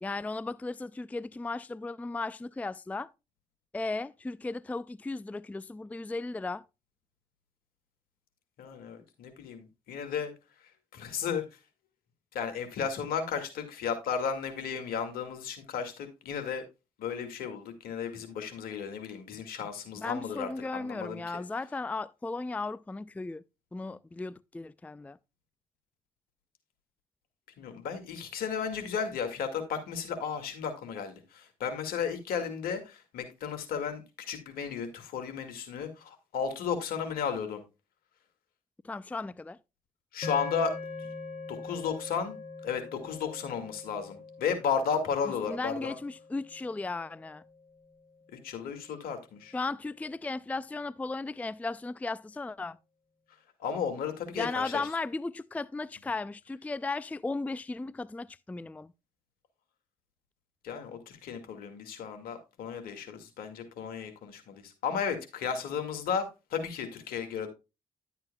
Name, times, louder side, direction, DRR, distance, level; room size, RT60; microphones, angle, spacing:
voice 1, 0.0-3.1 3.7-6.7 20.0-23.4 23.7-25.2 38.8-39.6 45.5-47.4 49.5-52.8 54.4-58.9, left 3 dB, 10° left, 0.4 m, -36 dB
voice 2, 8.6-10.3 10.9-11.4 12.3-16.6 17.0-21.4 27.6-37.6 40.1-40.8 41.5-46.0 48.3-49.5 53.6-54.8 60.6-67.5, left 6 dB, 75° left, 2.1 m, -34 dB
sound 1, 40.2-48.6, left 4 dB, 50° left, 3.2 m, -43 dB
11.0 x 8.1 x 2.3 m
hypercardioid pair, 50°, 15 cm